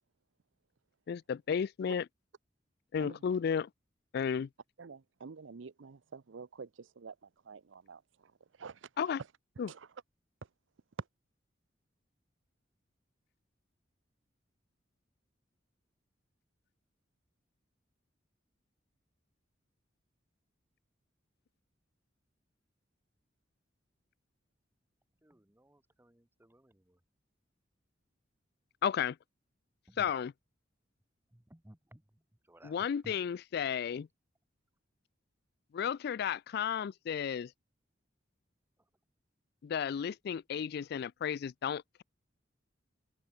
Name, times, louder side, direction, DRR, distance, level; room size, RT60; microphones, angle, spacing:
voice 1, 1.1-2.0 2.9-3.7 4.1-4.5 9.0-9.2 9.6-9.7 28.8-29.2 30.0-30.3 32.6-34.1 35.7-37.5 39.6-42.0, left 7 dB, 55° left, 0.3 m, -33 dB
voice 2, 4.8-8.3 8.6-8.9 9.7-9.9 11.0-11.1, right 5 dB, 85° right, 0.6 m, -48 dB
voice 3, 25.2-27.0 29.9-30.1 31.3-33.2 38.8-38.9, right 1 dB, 10° right, 1.0 m, -58 dB
head